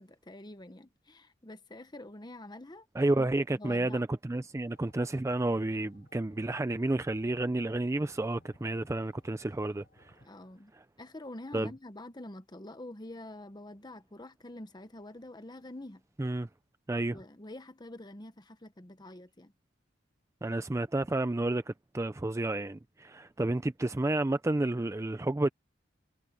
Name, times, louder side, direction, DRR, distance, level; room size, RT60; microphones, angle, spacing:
voice 1, 0.0-2.9 3.2-4.0 10.2-10.7 11.0-16.0 17.1-19.5, left 1 dB, 25° left, 1.1 m, -46 dB
voice 2, 2.9-10.2 10.7-10.8 11.5-11.7 16.2-16.5 16.9-17.2 20.4-25.5, right 2 dB, 15° right, 0.4 m, -31 dB
sound 1, 4.7-10.3, left 1 dB, 55° left, 6.6 m, -61 dB
head